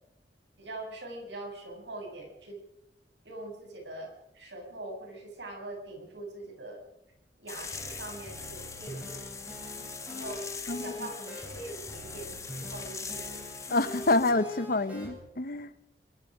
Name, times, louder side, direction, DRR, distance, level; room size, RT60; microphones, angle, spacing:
voice 1, 0.6-2.6 3.2-6.8 7.4-9.1 10.1-10.5 10.8-13.4, right 2 dB, 80° right, 2 dB, 7.6 m, -42 dB
sound 1, 7.5-14.3, left 5 dB, 20° left, 1.9 m, -42 dB
sound 2, 7.7-15.1, left 1 dB, 10° right, 8.0 m, -43 dB
voice 2, 10.7-11.1 13.7-15.8, left 2 dB, 55° left, 14 dB, 1.0 m, -28 dB
24.5 x 21.5 x 5.1 m, 0.83 s
head